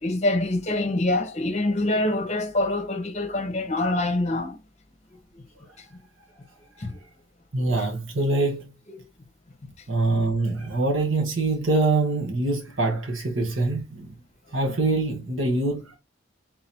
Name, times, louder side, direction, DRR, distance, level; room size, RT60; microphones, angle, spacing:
voice 1, 0.0-4.6 5.3-5.4 6.8-7.0 7.8-7.9 9.0-9.1, left 2 dB, 35° left, 0.9 m, -25 dB
voice 2, 7.5-8.7 9.9-14.1 14.5-16.0, right 2 dB, 65° right, 1.1 m, -24 dB
4.0 x 2.8 x 4.3 m
head